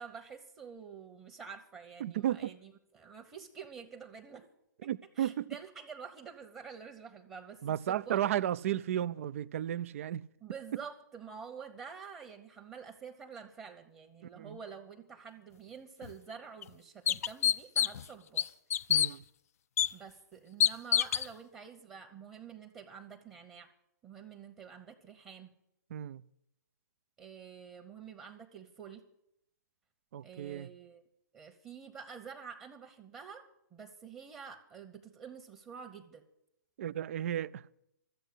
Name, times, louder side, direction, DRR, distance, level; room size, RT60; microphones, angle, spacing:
voice 1, 0.0-4.4 4.8-4.9 5.2-8.6 10.4-18.5 19.9-23.7 24.0-25.5 27.2-29.0 30.2-31.0 31.3-33.4 33.7-36.2, right 6 dB, 20° right, 1.2 m, -48 dB
voice 2, 2.0-2.5 4.8-5.5 7.6-10.2 14.3-14.6 18.9-19.2 25.9-26.2 30.1-30.7 36.8-37.7, right 11 dB, 45° right, 0.5 m, -34 dB
sound 1, 16.0-16.1 16.6-16.7 17.1-18.1 18.4-19.1 19.8-19.9 20.6-21.3, left 10 dB, 55° left, 0.4 m, -26 dB
13.5 x 8.1 x 9.8 m
figure-of-eight pair, 120°, 10 cm